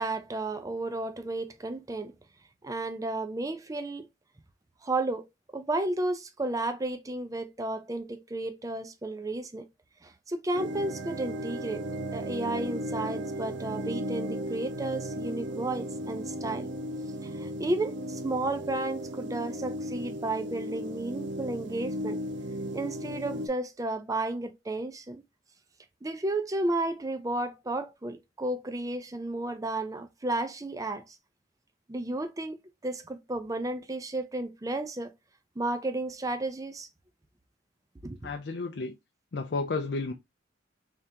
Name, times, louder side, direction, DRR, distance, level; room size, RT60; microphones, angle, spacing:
voice 1, 0.0-2.1 2.6-4.1 4.8-9.7 10.0-11.8 12.1-16.7 17.2-22.2 22.7-25.2 26.0-31.2 31.9-35.1 35.6-36.9 38.0-38.3, right 2 dB, 20° right, 0.5 m, -33 dB
sound 1, 10.5-23.5, equal, 75° right, 0.6 m, -35 dB
voice 2, 38.2-39.0 39.3-40.1, left 3 dB, 60° left, 0.5 m, -32 dB
3.6 x 3.4 x 2.8 m
head